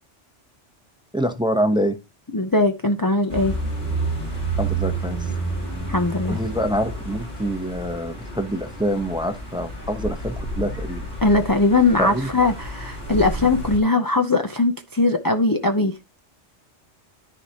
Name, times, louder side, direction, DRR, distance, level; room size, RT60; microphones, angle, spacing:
voice 1, 1.1-2.0 4.6-5.3 6.3-11.1 12.0-12.3, equal, 5° right, 0.8 m, -25 dB
voice 2, 2.3-3.5 5.9-6.4 11.2-15.9, left 2 dB, 25° left, 0.6 m, -20 dB
sound 1, 3.3-13.8, right 2 dB, 90° left, 4.2 m, -30 dB
13.5 x 4.8 x 2.9 m
omnidirectional pair, 1.2 m